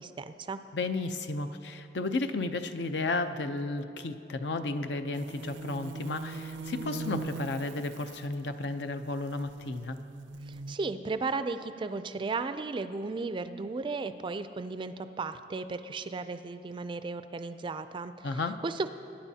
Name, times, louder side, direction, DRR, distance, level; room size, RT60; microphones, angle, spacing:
voice 1, 0.0-0.6 10.5-18.9, right 3 dB, 30° right, 11 dB, 0.3 m, -35 dB
voice 2, 0.7-10.0 18.2-18.6, left 3 dB, 70° left, 8 dB, 0.6 m, -33 dB
sound 1, 5.1-10.8, right 3 dB, 85° right, 0.5 m, -41 dB
21.5 x 10.0 x 2.8 m, 2.7 s
head